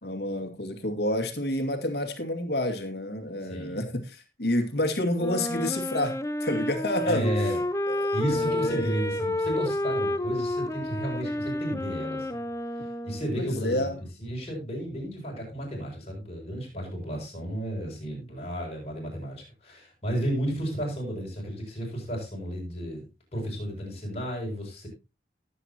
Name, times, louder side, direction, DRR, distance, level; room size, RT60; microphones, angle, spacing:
voice 1, 0.0-7.3 7.9-8.9 13.4-14.0, left 1 dB, 65° left, 5 dB, 2.3 m, -29 dB
voice 2, 3.5-3.8 7.0-7.6 8.1-12.5 13.0-13.9 14.2-23.0 23.3-24.9, right 1 dB, 35° left, -2 dB, 6.6 m, -32 dB
Wind instrument woodwind instrument, 5.2-13.5, left 1 dB, 15° left, 0.6 m, -30 dB
18.5 x 8.3 x 2.9 m, 0.27 s
head